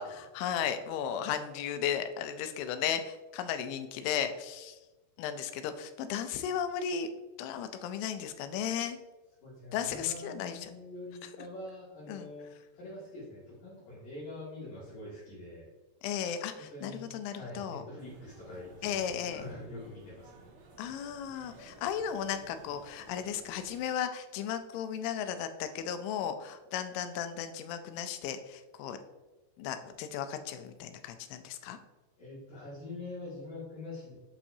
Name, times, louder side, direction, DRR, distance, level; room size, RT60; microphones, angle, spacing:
voice 1, 0.0-4.8 5.2-7.1 7.4-9.0 9.7-10.7 11.2-11.3 12.1-12.3 16.0-17.8 18.8-19.4 20.8-29.0 29.6-31.8, left 8 dB, 85° left, 9 dB, 3.0 m, -35 dB
voice 2, 9.4-15.7 16.6-20.4 32.2-34.1, left 2 dB, 55° left, -10 dB, 3.3 m, -45 dB
sound 1, 18.0-23.8, right 3 dB, 70° right, 2.9 m, -55 dB
7.9 x 5.8 x 2.7 m, 1.1 s
omnidirectional pair, 5.3 m